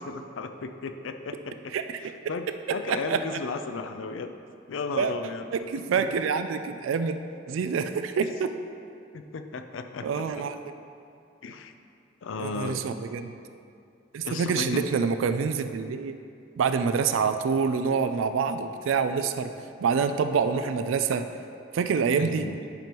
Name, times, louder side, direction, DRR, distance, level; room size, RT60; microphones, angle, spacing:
voice 1, 0.0-1.7 2.0-4.3 4.7-5.4 6.0-6.1 9.1-10.4 11.4-11.7 12.2-12.8 14.2-14.8 22.2-22.6, left 4 dB, 75° left, 7 dB, 0.5 m, -35 dB
voice 2, 2.9-3.2 5.0-5.1 5.5-7.2 7.5-8.5 10.0-10.6 12.4-13.3 14.1-16.1 16.6-19.5 19.8-21.3 21.7-22.5, right 5 dB, 85° right, 9 dB, 0.3 m, -26 dB
10.5 x 5.3 x 3.0 m, 2.5 s
head